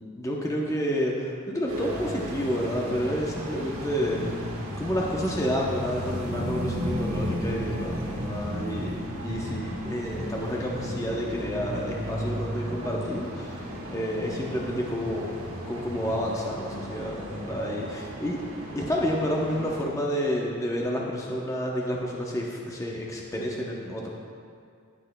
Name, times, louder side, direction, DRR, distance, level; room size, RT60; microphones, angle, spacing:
voice 1, 0.0-4.4 4.8-13.6 13.9-15.4 15.7-18.4 18.7-24.1, equal, 15° left, -2 dB, 0.7 m, -30 dB
sound 1, 1.7-19.8, equal, 70° right, 1.4 m, -34 dB
18.0 x 6.2 x 2.2 m, 2.3 s
head